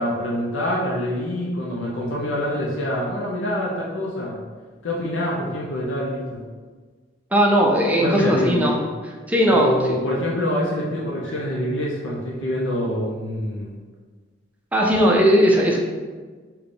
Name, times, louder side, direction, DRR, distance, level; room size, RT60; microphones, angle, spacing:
voice 1, 0.0-4.4 4.8-6.4 8.0-8.8 9.5-13.8, left 1 dB, 75° left, -3 dB, 0.6 m, -25 dB
voice 2, 7.3-8.8 9.3-10.0 14.7-15.8, equal, 10° right, -1 dB, 0.4 m, -18 dB
3.5 x 2.2 x 3.8 m, 1.4 s
head